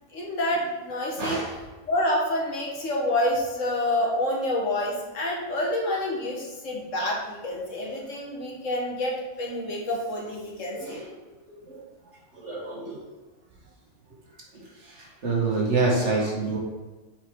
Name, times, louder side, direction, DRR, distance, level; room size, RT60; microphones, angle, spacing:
voice 1, 0.1-1.4 1.9-11.0, left 1 dB, 70° left, -2 dB, 1.7 m, -28 dB
voice 2, 1.2-1.5 10.7-10.9 11.7-11.8 12.4-13.0 15.2-16.6, right 3 dB, 60° right, -3 dB, 1.9 m, -26 dB
7.2 x 5.0 x 3.8 m, 1.2 s
omnidirectional pair, 1.4 m